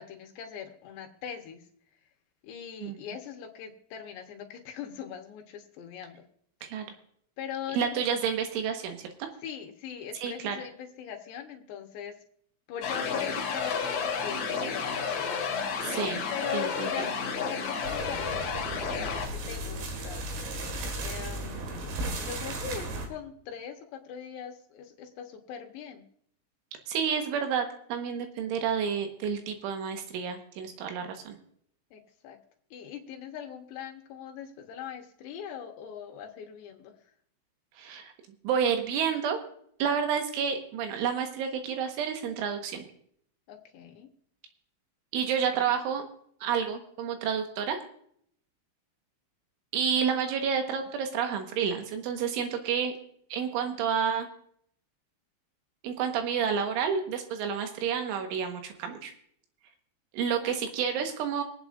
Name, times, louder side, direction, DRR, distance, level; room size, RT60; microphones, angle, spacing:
voice 1, 0.0-1.6 2.4-6.2 7.4-8.2 9.4-12.1 12.7-15.5 16.3-20.3 21.0-26.0 31.9-32.4 32.7-36.9 43.5-44.1 60.4-60.6, left 9 dB, 70° left, 3 dB, 3.0 m, -41 dB
voice 2, 7.7-9.3 10.1-10.6 15.8-16.3 16.5-17.1 26.9-31.4 37.8-38.1 38.4-39.4 39.8-42.9 45.1-46.0 46.4-47.8 49.7-52.9 53.3-54.3 55.8-59.1 60.1-61.4, right 7 dB, 85° right, 5 dB, 3.7 m, -30 dB
sound 1, 12.8-19.3, left 5 dB, 50° left, 2.2 m, -31 dB
sound 2, 17.8-23.1, right 1 dB, 65° right, 3.8 m, -35 dB
26.0 x 8.9 x 2.5 m, 0.66 s
omnidirectional pair, 5.6 m